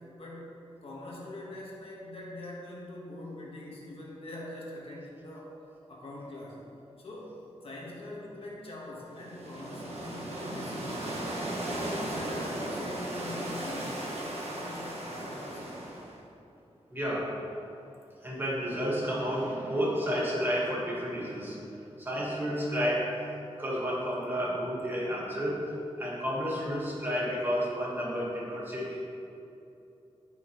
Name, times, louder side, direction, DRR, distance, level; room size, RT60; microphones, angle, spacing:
voice 1, 0.2-0.5 0.8-5.6 5.9-6.6 7.0-7.4 7.6-11.1 11.6-15.7, left 1 dB, 55° left, -4 dB, 1.7 m, -43 dB
sound 1, 9.1-16.2, right 1 dB, 65° right, 1.5 m, -36 dB
voice 2, 16.9-17.5 18.2-23.3 23.6-29.0, equal, 20° right, -6 dB, 1.8 m, -31 dB
13.5 x 5.8 x 3.3 m, 2.8 s
wide cardioid pair, 160°, 11 cm